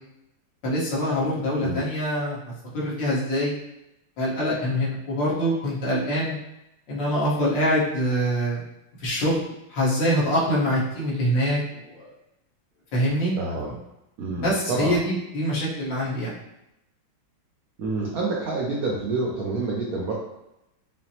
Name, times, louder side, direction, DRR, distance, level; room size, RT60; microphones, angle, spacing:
voice 1, 0.6-2.4 2.7-3.5 4.2-6.4 6.9-8.6 9.0-9.4 9.7-12.1 12.9-13.4 14.4-16.3, equal, 65° left, -7 dB, 1.8 m, -24 dB
voice 2, 13.4-13.7 14.2-15.0 17.8-20.1, right 3 dB, 75° right, -3 dB, 0.8 m, -28 dB
5.7 x 2.1 x 2.8 m, 0.89 s
omnidirectional pair, 2.2 m